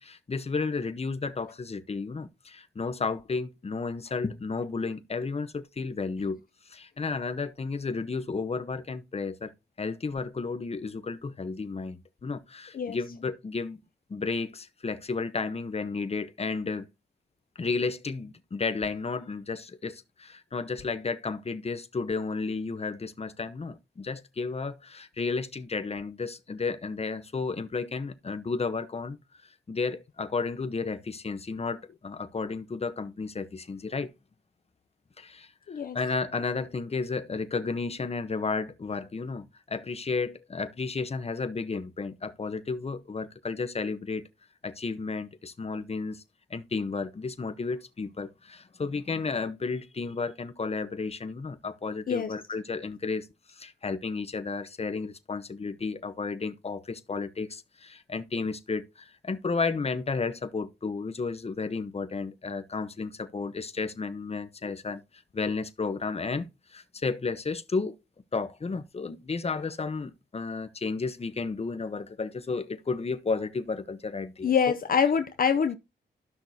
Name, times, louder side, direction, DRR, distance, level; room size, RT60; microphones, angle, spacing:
voice 1, 0.0-6.4 6.7-9.5 9.8-13.8 14.1-16.9 17.6-29.2 29.7-34.1 35.2-35.5 35.9-44.3 44.6-46.2 46.5-65.0 65.3-68.0 68.3-74.5, left 4 dB, 35° left, 1.0 m, -32 dB
voice 2, 74.4-75.8, left 6 dB, 50° left, 0.7 m, -25 dB
13.0 x 6.0 x 2.8 m
cardioid pair, 85°, 19 cm